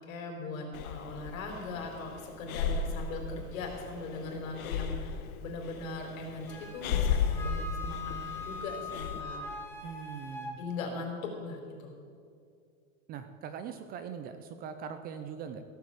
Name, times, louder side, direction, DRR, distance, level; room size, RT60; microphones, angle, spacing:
voice 1, 0.0-9.4 10.6-11.9, left 3 dB, 70° left, 1 dB, 4.1 m, -40 dB
Breathing, 0.7-9.2, left 6 dB, 85° left, 1.3 m, -35 dB
Wind instrument woodwind instrument, 6.5-10.6, left 3 dB, 5° left, 1.4 m, -42 dB
voice 2, 9.8-10.6 13.1-15.6, right 7 dB, 20° right, 9 dB, 0.5 m, -41 dB
16.0 x 8.3 x 8.2 m, 2.3 s
supercardioid pair, 155°, 42 cm